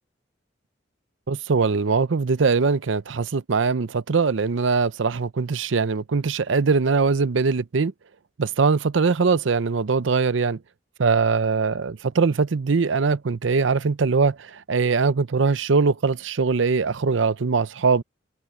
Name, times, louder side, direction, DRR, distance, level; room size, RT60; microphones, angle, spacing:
voice 1, 1.3-7.9 8.4-10.6 11.0-18.0, right 4 dB, 80° right, 0.6 m, -21 dB
head